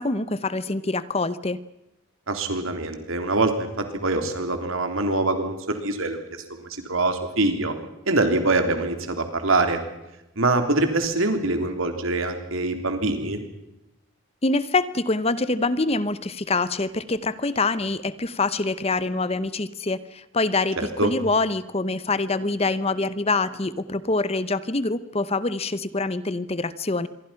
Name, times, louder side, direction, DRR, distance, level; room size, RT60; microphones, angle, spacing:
voice 1, 0.0-1.6 14.4-27.1, left 3 dB, 30° left, 16 dB, 0.8 m, -25 dB
voice 2, 2.3-6.2 6.9-7.7 8.1-9.8 10.3-13.4 21.0-21.1, right 2 dB, 70° right, 6 dB, 3.4 m, -24 dB
26.5 x 23.0 x 5.8 m, 0.92 s
head